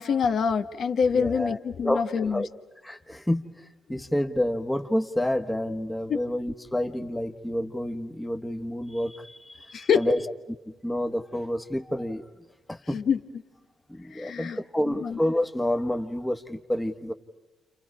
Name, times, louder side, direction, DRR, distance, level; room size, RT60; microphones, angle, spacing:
voice 1, 0.0-2.4 6.1-6.2 9.7-10.0 12.9-13.2 14.1-14.6 14.9-15.2, left 6 dB, 60° left, 8 dB, 1.3 m, -25 dB
voice 2, 1.1-2.5 2.8-3.5 3.9-10.2 10.7-12.2 12.7-13.0 13.9-17.1, left 1 dB, 10° left, 6 dB, 1.5 m, -29 dB
30.0 x 29.0 x 4.9 m, 1.1 s
hypercardioid pair, 45°, 0 cm